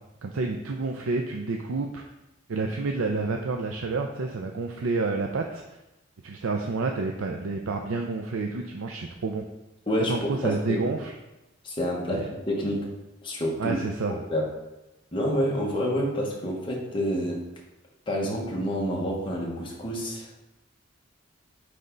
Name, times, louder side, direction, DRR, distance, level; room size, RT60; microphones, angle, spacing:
voice 1, 0.2-2.0 2.5-5.6 6.2-9.4 10.1-11.1 12.1-12.2 13.6-14.2, right 3 dB, 85° right, 3 dB, 0.5 m, -29 dB
voice 2, 9.9-10.9 11.6-12.9 13.2-13.8 14.1-14.5 15.1-17.4 18.1-20.3, equal, 25° left, -2 dB, 1.3 m, -28 dB
9.4 x 3.4 x 3.9 m, 0.97 s
head